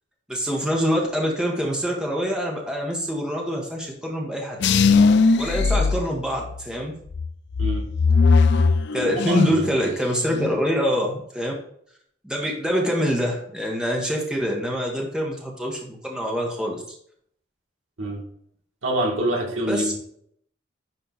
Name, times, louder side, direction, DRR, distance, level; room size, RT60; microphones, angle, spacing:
voice 1, 0.3-4.6 5.4-6.9 8.9-11.5 12.2-16.8 19.7-19.9, equal, 5° right, -2 dB, 1.4 m, -25 dB
sound 1, 4.6-6.7 7.1-9.7 10.0-10.6, left 4 dB, 60° left, 0.5 m, -19 dB
voice 2, 9.3-9.9 18.0-18.2 18.8-19.9, right 1 dB, 80° right, -2 dB, 2.3 m, -26 dB
10.5 x 3.6 x 4.1 m, 0.65 s
head